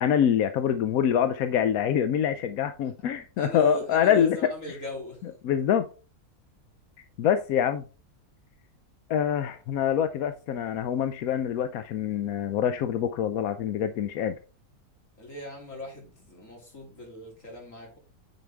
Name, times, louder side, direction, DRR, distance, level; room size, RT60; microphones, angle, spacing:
voice 1, 0.0-4.4 5.2-5.8 7.2-7.8 9.1-14.3, left 9 dB, 75° left, 1.1 m, -25 dB
voice 2, 3.4-5.2 15.2-18.0, equal, 60° left, 3.3 m, -39 dB
9.4 x 5.1 x 3.4 m
omnidirectional pair, 1.6 m